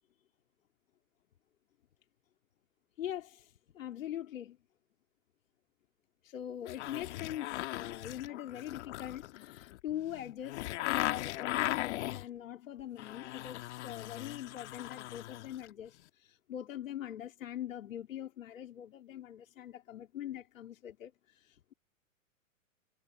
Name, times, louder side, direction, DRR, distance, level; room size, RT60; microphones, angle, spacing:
voice 1, 3.0-4.6 6.2-21.7, left 11 dB, 70° left, 2.4 m, -42 dB
sound 1, 6.6-12.3 12.8-15.7 16.0-16.1, left 16 dB, 55° left, 1.9 m, -38 dB
hypercardioid pair, 120°, 41 cm